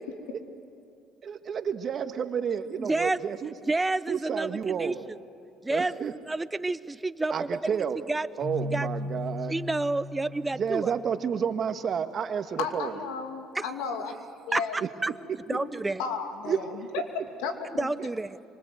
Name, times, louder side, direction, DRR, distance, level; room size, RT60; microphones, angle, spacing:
voice 1, 1.2-3.5 4.1-4.9 5.7-6.1 7.3-8.0 8.4-9.5 10.6-12.9 16.4-16.6, right 7 dB, 50° right, 8 dB, 1.6 m, -30 dB
voice 2, 2.8-3.2 3.7-5.2 5.6-6.0 6.2-8.3 8.7-8.9 9.5-10.9 13.5-13.7 14.5-15.1 15.5-16.0 17.8-18.4, right 2 dB, 15° right, 15 dB, 0.7 m, -29 dB
Keyboard (musical), 8.4-11.3, left 2 dB, 30° left, 7.8 m, -37 dB
voice 3, 12.6-14.1 14.5-14.8 15.5-15.7 16.0-17.9, left 5 dB, 85° left, 5 dB, 2.7 m, -34 dB
27.5 x 25.0 x 7.9 m, 2.6 s
supercardioid pair, 80°, 0 cm